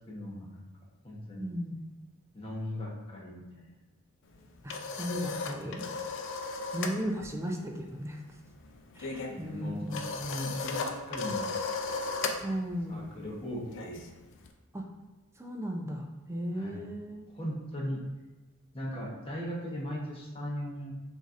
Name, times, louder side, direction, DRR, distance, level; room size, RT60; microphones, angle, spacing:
voice 1, 0.1-0.7 1.0-1.5 2.3-3.7 9.3-11.6 12.9-14.0 16.6-16.8 17.3-18.0 18.7-20.9, equal, 25° left, -4 dB, 1.0 m, -38 dB
voice 2, 1.4-1.8 4.6-5.8 6.7-8.2 9.0-9.9 12.4-13.0 14.7-14.9 15.4-17.2, equal, 15° right, 1 dB, 0.5 m, -36 dB
sound 1, 4.3-7.0 7.3-7.6 7.8-14.5, left 4 dB, 60° left, 0.4 m, -36 dB
6.2 x 2.7 x 2.5 m, 1.2 s
head